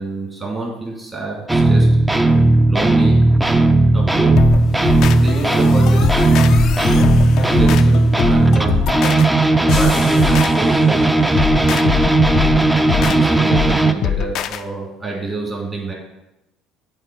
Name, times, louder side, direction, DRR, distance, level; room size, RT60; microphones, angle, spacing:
voice 1, 0.0-1.9 2.7-3.2 3.9-4.4 5.2-6.5 7.4-8.9 9.7-11.0 12.8-15.9, right 3 dB, 30° right, -2 dB, 2.2 m, -27 dB
sound 1, 1.5-13.9, right 2 dB, 10° right, 0.5 m, -15 dB
sound 2, 4.4-14.6, left 10 dB, 60° left, 0.3 m, -23 dB
6.5 x 4.1 x 4.6 m, 0.93 s
hypercardioid pair, 65°, 0 cm